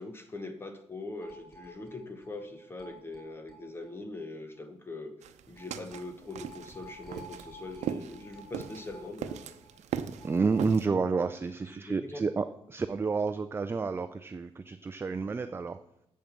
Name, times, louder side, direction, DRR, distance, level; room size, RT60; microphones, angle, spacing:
voice 1, 0.0-5.1 5.5-9.5 11.7-12.2, left 2 dB, 20° left, 8 dB, 1.0 m, -42 dB
sound 1, 1.2-3.9 4.2-4.3 4.6-4.7 5.6-11.3 11.6-11.7 12.0-12.1, equal, ahead, 3.3 m, -51 dB
sound 2, 5.2-10.9, right 8 dB, 85° right, 0.7 m, -38 dB
voice 2, 10.2-15.8, right 4 dB, 20° right, 10 dB, 0.4 m, -30 dB
8.6 x 7.6 x 7.1 m, 0.79 s
cardioid pair, 150°, 12 cm